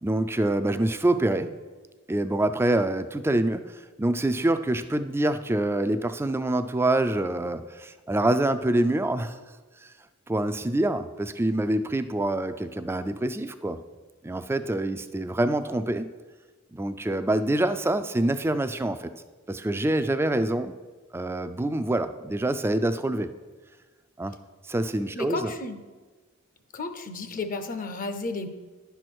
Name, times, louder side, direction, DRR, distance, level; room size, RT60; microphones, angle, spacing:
voice 1, 0.0-1.6 2.1-9.4 10.3-13.8 14.2-16.1 16.7-19.1 19.5-20.8 21.1-23.3 24.2-24.3 24.7-25.5, right 1 dB, 10° right, 11 dB, 0.3 m, -26 dB
voice 2, 25.1-25.8 26.7-28.5, left 3 dB, 40° left, 8 dB, 0.6 m, -32 dB
10.5 x 4.6 x 6.1 m, 1.3 s
head